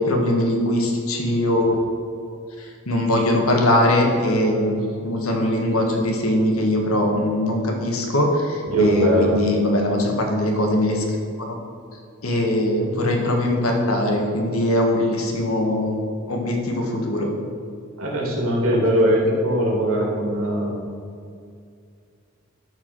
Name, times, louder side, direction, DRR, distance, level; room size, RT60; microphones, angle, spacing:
voice 1, 0.0-1.8 2.6-11.0 11.5-11.6 12.2-16.0 16.3-17.3, left 1 dB, 90° left, 1 dB, 1.8 m, -21 dB
voice 2, 8.6-9.3 18.0-20.8, right 1 dB, 85° right, -2 dB, 2.8 m, -20 dB
13.0 x 4.9 x 6.3 m, 2.3 s
head